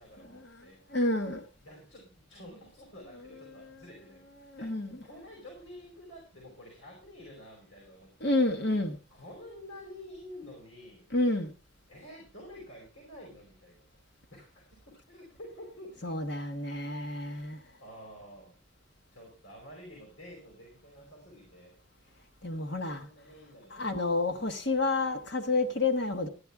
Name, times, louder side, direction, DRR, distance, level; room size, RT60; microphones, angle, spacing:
voice 1, 0.0-0.8 1.6-8.4 9.1-11.1 11.9-16.1 17.8-18.5 19.1-21.8 22.7-24.2, left 1 dB, 85° left, 5.1 m, -50 dB
voice 2, 0.9-1.5 4.4-5.0 8.2-9.0 11.1-11.5 16.0-17.6 22.4-23.1 23.7-26.3, left 2 dB, 55° left, 1.2 m, -29 dB
14.0 x 10.5 x 3.5 m
head